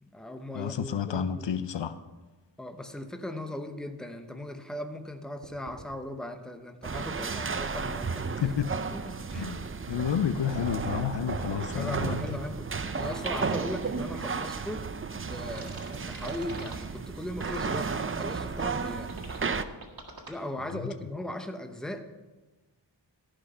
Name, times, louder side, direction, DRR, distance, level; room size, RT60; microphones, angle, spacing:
voice 1, 0.0-1.5 2.6-8.2 8.9-9.5 11.7-14.9 15.3-19.2 20.3-22.2, left 1 dB, ahead, 7 dB, 0.9 m, -38 dB
voice 2, 0.5-1.9 8.4-8.7 9.3-9.6 9.9-12.2 20.7-20.9, left 8 dB, 70° left, 12 dB, 0.7 m, -30 dB
sound 1, 5.4-5.8 7.4-8.1 8.5-8.6 8.9-9.5 12.2-12.4 12.8-13.3 13.9-14.3 15.6-16.8 17.4-18.2 18.8-18.9 19.1-20.3, right 3 dB, 50° right, 1.8 m, -44 dB
sound 2, 6.8-19.6, right 5 dB, 30° right, 0.5 m, -33 dB
14.0 x 6.2 x 5.5 m, 1.2 s
wide cardioid pair, 75°, 45 cm